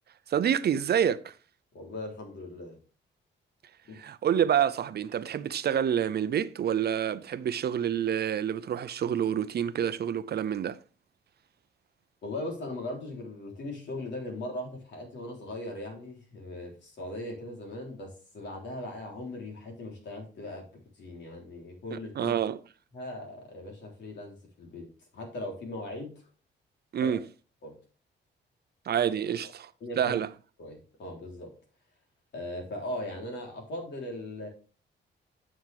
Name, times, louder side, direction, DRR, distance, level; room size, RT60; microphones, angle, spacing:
voice 1, 0.3-1.3 3.9-10.8 21.9-22.6 26.9-27.2 28.9-29.7 30.0-30.3, right 9 dB, 60° right, 0.6 m, -28 dB
voice 2, 1.7-2.8 3.9-4.0 12.2-20.7 21.0-22.4 22.9-24.9 25.1-26.1 27.0-27.2 27.6-27.7 29.8-30.2 30.6-31.5 32.3-34.5, left 1 dB, 70° left, 3.7 m, -39 dB
9.4 x 6.2 x 3.5 m
cardioid pair, 95°, 19 cm